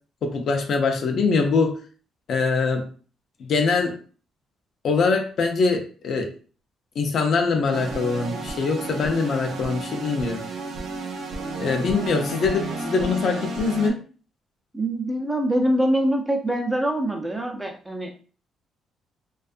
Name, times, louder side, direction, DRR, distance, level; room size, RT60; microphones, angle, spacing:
voice 1, 0.2-1.8 2.3-2.9 3.4-4.0 4.8-6.3 7.0-10.4 11.6-14.0, left 4 dB, 65° left, 4 dB, 0.6 m, -23 dB
sound 1, 7.7-13.9, right 3 dB, 75° right, 0.5 m, -32 dB
voice 2, 14.7-18.1, right 1 dB, 10° right, 2 dB, 0.6 m, -24 dB
2.6 x 2.3 x 2.5 m, 0.40 s
cardioid pair, 90°, 0 cm